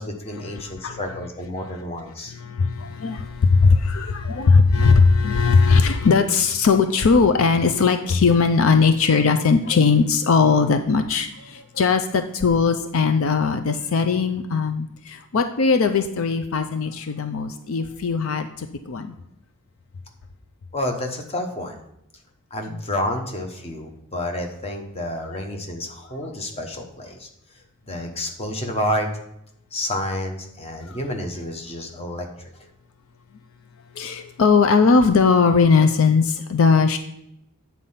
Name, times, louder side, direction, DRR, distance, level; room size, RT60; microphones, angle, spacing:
voice 1, 0.0-2.3 20.7-21.8 22.5-27.3 27.9-29.1 29.7-32.7, left 1 dB, 30° left, 4 dB, 1.0 m, -29 dB
voice 2, 0.7-1.0 2.4-19.1 22.7-22.8 25.3-25.4 34.0-37.0, left 4 dB, 70° left, 8 dB, 0.5 m, -19 dB
8.3 x 4.2 x 5.6 m, 0.80 s
head